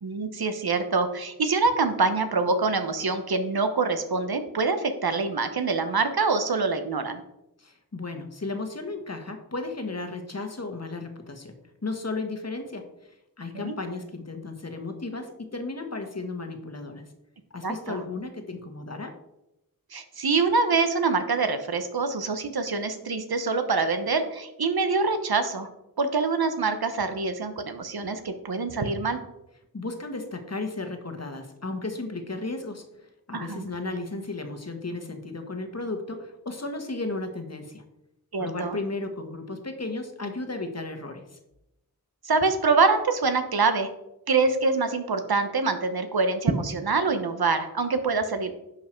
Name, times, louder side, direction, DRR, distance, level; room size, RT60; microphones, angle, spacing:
voice 1, 0.0-7.2 13.5-13.7 17.6-18.0 19.9-25.7 26.0-29.2 33.3-33.7 38.3-38.8 42.2-43.9 44.3-48.5, right 4 dB, 80° right, 8 dB, 1.1 m, -25 dB
voice 2, 7.6-12.9 13.4-17.1 17.5-19.2 29.7-37.8 38.4-41.4, left 3 dB, 45° left, 6 dB, 1.4 m, -34 dB
10.5 x 5.8 x 4.5 m, 0.89 s
wide cardioid pair, 65°, 37 cm